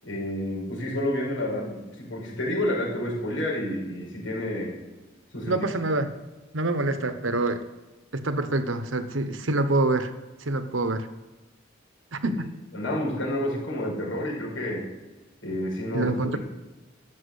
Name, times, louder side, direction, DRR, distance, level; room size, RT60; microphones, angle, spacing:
voice 1, 0.0-4.7 5.3-5.6 12.7-14.9 15.4-16.4, left 1 dB, 90° left, -3 dB, 6.0 m, -29 dB
voice 2, 5.5-6.2 6.5-7.6 8.1-10.1 10.4-11.1 12.1-12.5 15.9-16.4, right 2 dB, 85° right, 10 dB, 1.1 m, -26 dB
13.5 x 7.4 x 8.2 m, 1.2 s
head